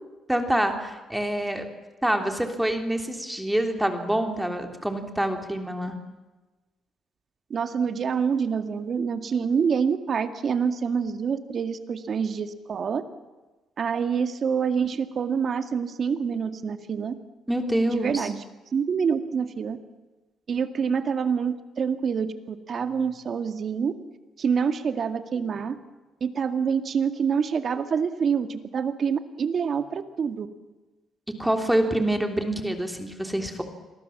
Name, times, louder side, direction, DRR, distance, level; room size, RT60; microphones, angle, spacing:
voice 1, 0.3-1.7 2.0-5.9 17.5-18.3 31.4-33.6, right 1 dB, 5° right, 4 dB, 3.3 m, -26 dB
voice 2, 7.5-13.0 13.8-17.1 17.9-18.4 18.7-19.8 20.5-23.9 24.4-25.8 26.2-30.5, right 6 dB, 50° right, 8 dB, 2.0 m, -26 dB
29.0 x 22.5 x 7.3 m, 1.2 s
cardioid pair, 90°, 0 cm